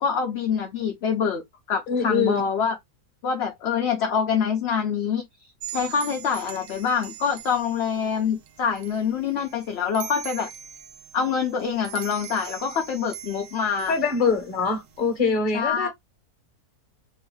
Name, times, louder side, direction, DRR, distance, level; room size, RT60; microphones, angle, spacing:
voice 1, 0.0-1.4 1.7-2.8 3.2-5.3 5.7-10.5 11.1-13.9 15.5-15.9, left 6 dB, 55° left, 0.7 m, -25 dB
voice 2, 1.9-2.4 13.9-15.9, left 4 dB, 35° left, 1.0 m, -23 dB
sound 1, 5.6-15.2, right 10 dB, 90° right, 1.2 m, -42 dB
3.8 x 2.6 x 3.1 m
omnidirectional pair, 1.6 m